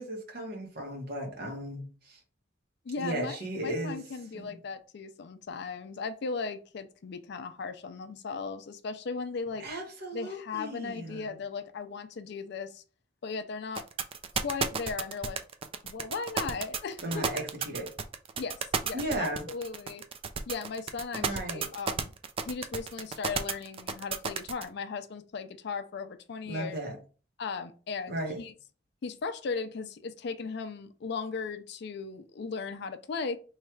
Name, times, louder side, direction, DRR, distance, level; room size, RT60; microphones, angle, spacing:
voice 1, 0.0-2.2 3.0-4.0 4.3-4.6 9.6-11.3 17.0-17.9 18.9-19.5 21.1-21.7 26.4-27.0 28.1-28.4, right 1 dB, 55° right, 1.1 m, -35 dB
voice 2, 2.9-9.7 10.1-12.8 13.2-13.8 14.4-15.4 15.8-17.3 18.4-20.0 20.5-22.1 22.4-26.8 27.4-28.5 29.0-33.4, left 5 dB, 60° left, 0.4 m, -37 dB
sound 1, 13.7-24.6, right 6 dB, 30° right, 0.3 m, -32 dB
3.1 x 2.3 x 4.4 m
head